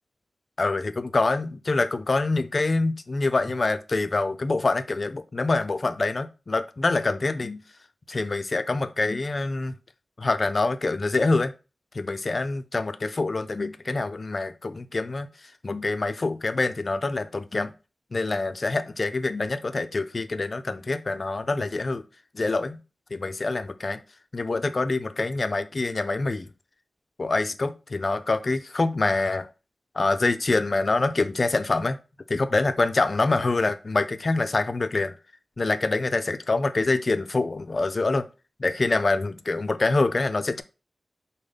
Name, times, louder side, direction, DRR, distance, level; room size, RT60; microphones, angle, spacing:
voice 1, 0.6-7.6 8.1-9.7 10.2-11.5 11.9-15.3 15.6-17.7 18.1-22.0 22.3-22.8 23.1-24.0 24.3-26.5 27.2-29.5 30.0-32.0 32.3-35.1 35.6-38.3 38.6-40.6, left 3 dB, 55° left, 0.4 m, -25 dB
5.1 x 2.1 x 3.7 m
cardioid pair, 50°, 0 cm